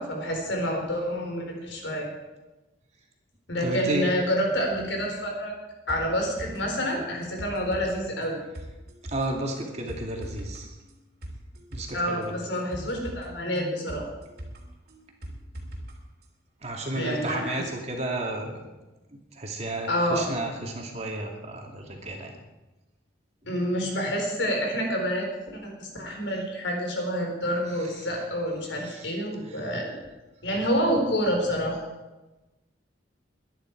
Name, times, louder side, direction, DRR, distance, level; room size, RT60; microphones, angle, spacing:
voice 1, 0.0-2.1 3.5-5.5 5.9-8.4 11.9-14.0 16.9-17.6 19.9-20.3 23.4-29.9 30.4-31.8, equal, 75° left, 1 dB, 4.3 m, -28 dB
voice 2, 3.6-4.1 9.1-10.7 11.7-12.3 16.6-18.7 19.1-22.3 27.8-28.1 28.8-29.1 29.4-29.8, right 1 dB, 35° right, 1 dB, 2.6 m, -33 dB
sound 1, 5.9-15.9 16.2-16.3, equal, 55° right, 3.1 m, -42 dB
22.0 x 10.5 x 4.7 m, 1.1 s
head